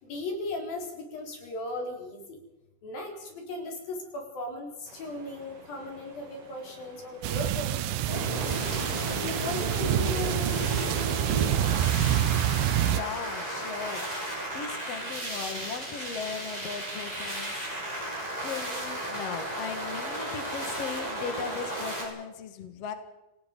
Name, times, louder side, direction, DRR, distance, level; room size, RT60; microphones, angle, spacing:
voice 1, 0.0-2.4 2.8-7.8 8.1-8.5 9.1-10.9, left 2 dB, 75° left, 1 dB, 6.1 m, -37 dB
sound 1, 4.9-22.0, right 4 dB, 65° right, 5.0 m, -50 dB
sound 2, 7.2-13.0, right 12 dB, 80° right, 2.6 m, -27 dB
sound 3, 8.1-22.0, right 1 dB, 10° right, 6.3 m, -34 dB
voice 2, 12.9-17.7 18.4-22.9, left 6 dB, 50° left, 8 dB, 2.3 m, -38 dB
27.5 x 18.5 x 5.4 m, 1.0 s
omnidirectional pair, 4.2 m